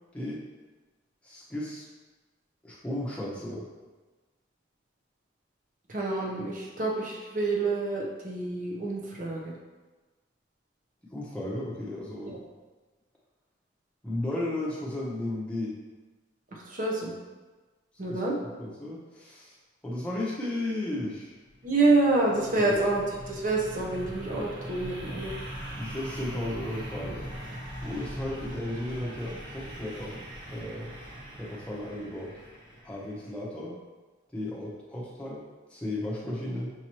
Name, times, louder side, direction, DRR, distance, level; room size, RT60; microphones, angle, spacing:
voice 1, 0.1-0.4 1.2-1.9 2.6-3.6 11.1-12.4 14.0-15.8 18.1-18.2 18.6-19.6 19.8-21.4 22.6-22.7 25.8-27.3 27.8-30.9 31.4-32.3 32.8-33.8 34.3-35.4 35.7-36.7, left 1 dB, 5° left, -7 dB, 0.8 m, -34 dB
voice 2, 5.9-9.5 12.2-12.4 16.5-17.1 18.0-18.3 21.6-25.3, right 2 dB, 40° right, -2 dB, 0.7 m, -27 dB
sound 1, 21.5-33.2, equal, 25° right, 1.0 m, -41 dB
6.0 x 2.9 x 2.9 m, 1.3 s
head